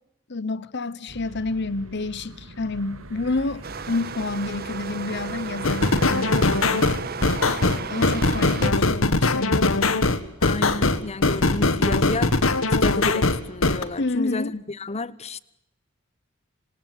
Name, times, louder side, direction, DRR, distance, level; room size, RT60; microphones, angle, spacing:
voice 1, 0.3-7.0 7.9-10.0 14.0-14.6, left 3 dB, 55° left, 1.0 m, -29 dB
sound 1, 1.1-7.2, right 1 dB, 85° right, 3.8 m, -42 dB
sound 2, 3.6-8.7, right 4 dB, 50° right, 1.5 m, -34 dB
sound 3, 5.6-13.8, left 2 dB, 80° left, 1.9 m, -21 dB
voice 2, 10.4-12.3 12.8-15.4, left 2 dB, 30° left, 1.1 m, -31 dB
27.0 x 27.0 x 7.5 m
head